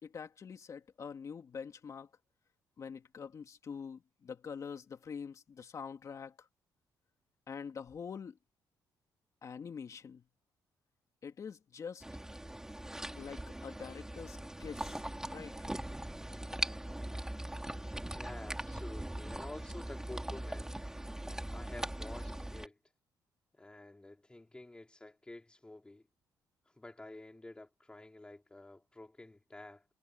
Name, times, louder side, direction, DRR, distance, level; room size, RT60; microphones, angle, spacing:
voice 1, 0.0-2.1 2.8-6.5 7.5-8.4 9.4-10.2 11.2-12.0 13.1-15.0 15.3-15.5, left 6 dB, 45° left, 2.4 m, -45 dB
sound 1, 12.0-22.7, right 1 dB, 5° right, 3.7 m, -41 dB
voice 2, 18.1-20.7 21.5-22.8 23.5-26.1 26.7-29.9, left 2 dB, 15° left, 3.5 m, -50 dB
cardioid pair, 105°, 7 cm